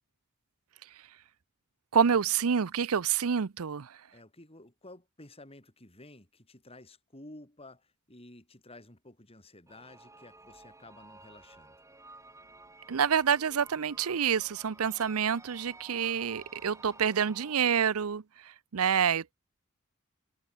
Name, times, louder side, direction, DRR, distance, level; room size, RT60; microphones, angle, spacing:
voice 1, 1.9-4.0 12.9-18.2 18.7-19.3, right 7 dB, 85° right, 0.6 m, -27 dB
voice 2, 4.1-11.8, left 2 dB, 25° left, 5.3 m, -52 dB
sound 1, 9.7-17.7, right 2 dB, 15° right, 4.8 m, -53 dB
head